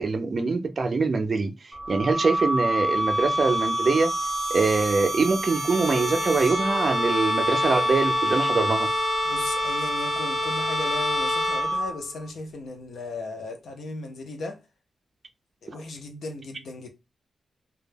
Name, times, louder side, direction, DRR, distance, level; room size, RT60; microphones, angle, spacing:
voice 1, 0.0-4.1 4.5-8.9, right 4 dB, 40° right, 0.4 m, -24 dB
sound 1, 1.7-12.1, right 1 dB, 5° left, 0.9 m, -27 dB
Bowed string instrument, 5.5-12.2, left 3 dB, 30° left, 1.0 m, -30 dB
voice 2, 9.2-14.6 15.6-16.9, left 2 dB, 80° left, 0.6 m, -36 dB
2.2 x 2.1 x 3.2 m
wide cardioid pair, 150°, 0 cm